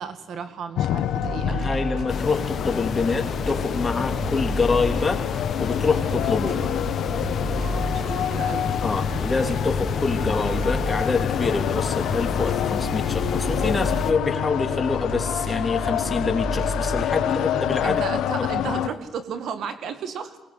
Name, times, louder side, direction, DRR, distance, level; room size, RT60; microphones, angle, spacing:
voice 1, 0.0-1.8 7.6-8.7 17.8-20.4, right 6 dB, 70° right, 10 dB, 1.9 m, -33 dB
sound 1, 0.8-18.9, left 10 dB, 85° left, 1.0 m, -28 dB
sound 2, 1.2-18.1, right 2 dB, 50° right, 4.9 m, -34 dB
voice 2, 1.5-5.2 5.6-6.7 8.8-18.0 18.4-18.5, left 4 dB, 25° left, 3 dB, 3.2 m, -26 dB
sound 3, 2.1-14.1, left 7 dB, 55° left, 0.9 m, -30 dB
23.0 x 20.5 x 8.5 m, 1.1 s
cardioid pair, 90°, 0 cm